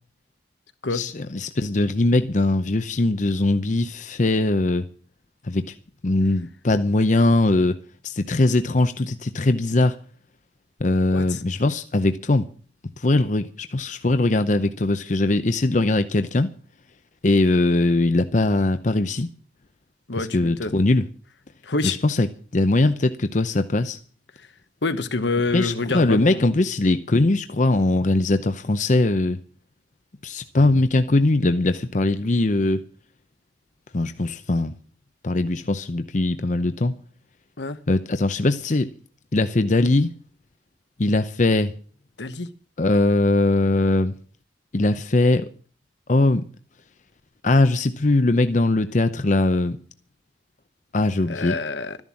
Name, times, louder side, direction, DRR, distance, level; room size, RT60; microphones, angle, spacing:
voice 1, 0.9-4.8 5.5-5.7 6.0-7.8 8.0-10.0 10.8-12.5 13.0-16.5 17.2-19.3 20.2-21.0 21.8-22.3 22.5-24.0 25.5-29.4 30.2-32.8 33.9-34.7 35.2-37.0 37.9-38.9 39.3-40.1 41.0-41.7 42.8-44.1 44.7-45.5 46.1-46.4 47.4-49.8 50.9-51.5, left 2 dB, 45° left, 0.7 m, -21 dB
voice 2, 11.1-11.4 20.1-20.8 21.6-22.0 24.4-24.5 24.8-26.5 37.6-37.8 42.2-42.5 51.3-52.0, left 3 dB, 75° left, 1.1 m, -27 dB
13.0 x 11.0 x 7.5 m
head